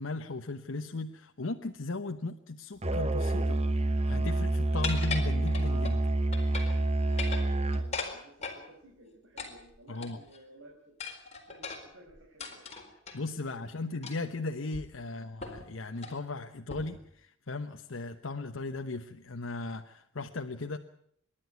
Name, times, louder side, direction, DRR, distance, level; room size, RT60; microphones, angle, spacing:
voice 1, 0.0-3.6 4.0-6.1 9.9-10.2 13.1-20.8, left 3 dB, 75° left, 6 dB, 1.0 m, -37 dB
Musical instrument, 2.8-8.0, right 1 dB, 35° right, 1.0 m, -28 dB
sound 1, 4.8-6.0 6.3-6.8 7.1-8.6 9.4-10.4 11.0-13.2 14.0-14.3 14.7-14.8 15.4-15.7 16.0-16.2 16.7-17.0, left 4 dB, 35° left, 4.3 m, -39 dB
voice 2, 7.1-11.0 11.5-12.6 13.4-13.7 15.0-15.3, right 1 dB, 70° right, -1 dB, 4.9 m, -55 dB
27.0 x 11.5 x 9.4 m, 0.71 s
head